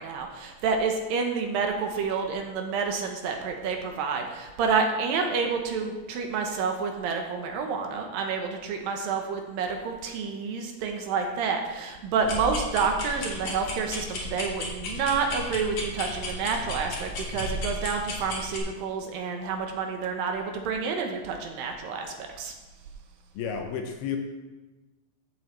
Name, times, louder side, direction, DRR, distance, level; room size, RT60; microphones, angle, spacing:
voice 1, 0.0-22.5, right 5 dB, 75° right, 3 dB, 2.3 m, -29 dB
sound 1, 12.2-18.6, left 2 dB, 55° left, 1.9 m, -34 dB
voice 2, 23.3-24.2, left 7 dB, 80° left, 4 dB, 2.6 m, -31 dB
15.0 x 7.4 x 3.1 m, 1.2 s
omnidirectional pair, 4.6 m